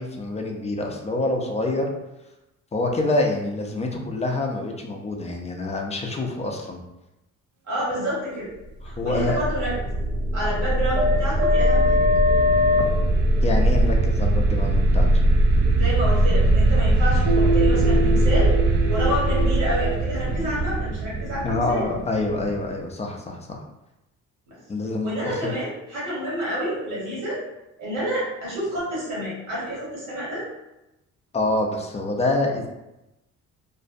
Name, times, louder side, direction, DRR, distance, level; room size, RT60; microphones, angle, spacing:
voice 1, 0.0-1.9 2.7-6.8 8.8-9.4 13.4-15.1 21.4-23.6 24.7-25.6 31.3-32.7, left 2 dB, 20° left, 1 dB, 0.4 m, -26 dB
voice 2, 7.7-8.5 8.8-9.7 10.3-12.1 15.8-18.6 18.9-21.9 24.5-24.6 25.0-27.4 27.8-30.4, equal, 75° right, -6 dB, 1.3 m, -28 dB
sound 1, 8.9-22.6, right 1 dB, 55° right, 0.4 m, -20 dB
2.5 x 2.0 x 2.5 m, 0.95 s
cardioid pair, 90°, 30 cm